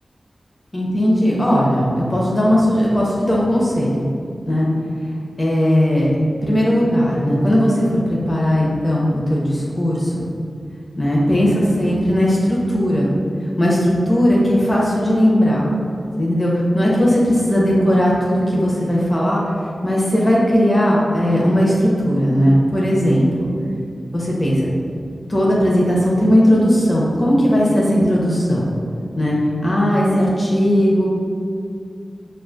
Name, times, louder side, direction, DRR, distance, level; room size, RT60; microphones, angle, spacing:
voice 1, 0.7-4.1 4.5-4.7 5.4-6.1 6.4-10.3 11.0-13.1 13.6-15.7 16.2-19.4 19.8-23.5 24.1-24.7 25.3-28.6 29.2-29.4 29.6-31.0, equal, 30° left, -5 dB, 0.9 m, -17 dB
5.8 x 2.5 x 2.4 m, 2.4 s
cardioid pair, 50°, 0 cm